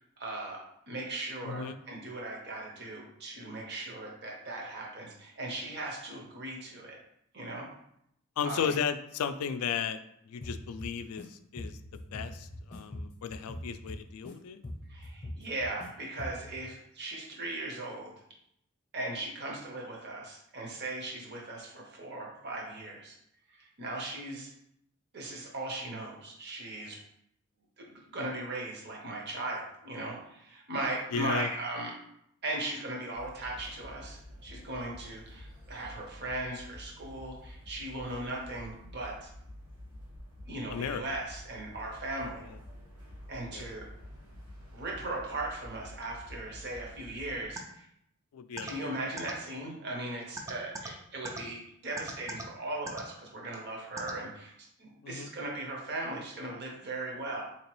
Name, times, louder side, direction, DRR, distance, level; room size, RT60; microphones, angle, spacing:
voice 1, 0.2-7.0 7.3-7.7 8.4-8.7 14.9-18.1 18.9-23.2 23.5-24.5 25.1-27.0 27.8-31.9 32.4-39.3 40.5-42.5 43.3-43.9 44.7-47.8 48.6-54.5 54.8-57.4, right 2 dB, 50° right, -1 dB, 0.8 m, -38 dB
voice 2, 1.4-1.8 8.4-10.0 10.3-14.6 31.1-31.5 40.7-41.0 42.5-42.6 43.5-43.7 48.3-49.0 55.0-55.3, left 7 dB, 70° left, 12 dB, 0.3 m, -35 dB
sound 1, 10.4-11.3 11.6-14.3 14.6-15.9 16.2-16.6, left 1 dB, 30° left, 0.6 m, -42 dB
sound 2, 33.1-47.4, left 1 dB, 85° right, 1.0 m, -49 dB
sound 3, 47.6-47.7 48.6-48.7 49.2-49.3 50.4-50.9 51.3-51.4 52.0-52.4 52.9-53.0 54.0-54.1, right 3 dB, 15° right, 0.3 m, -37 dB
3.8 x 2.9 x 3.0 m, 0.75 s
head